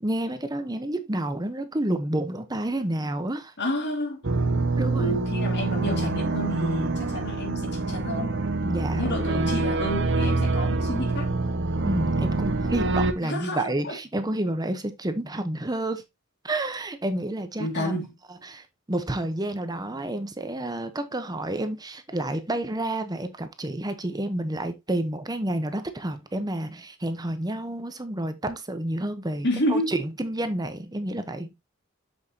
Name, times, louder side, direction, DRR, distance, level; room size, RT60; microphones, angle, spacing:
voice 1, 0.0-3.5 4.7-5.2 8.6-9.7 11.8-16.0 16.4-17.9 18.4-31.5, right 1 dB, 20° right, 1.0 m, -30 dB
voice 2, 3.6-4.2 4.9-8.4 8.9-11.3 13.2-14.0 17.6-18.1 29.4-29.9, equal, 55° left, 2.5 m, -30 dB
sound 1, 4.2-13.1, right 3 dB, 60° right, 1.0 m, -25 dB
7.3 x 6.9 x 2.8 m
head